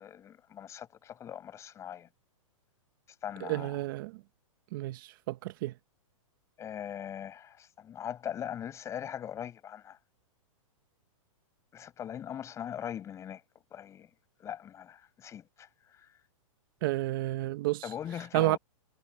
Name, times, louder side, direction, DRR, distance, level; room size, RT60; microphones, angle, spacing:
voice 1, 0.0-2.1 3.2-3.8 6.6-10.0 11.7-13.4 13.7-14.1 14.4-15.7 16.0-16.1 17.8-18.6, left 9 dB, 15° left, 5.9 m, -40 dB
voice 2, 3.4-4.1 4.7-5.7 16.8-17.9 18.3-18.6, right 18 dB, 40° right, 1.0 m, -30 dB
hypercardioid pair, 165°, 18 cm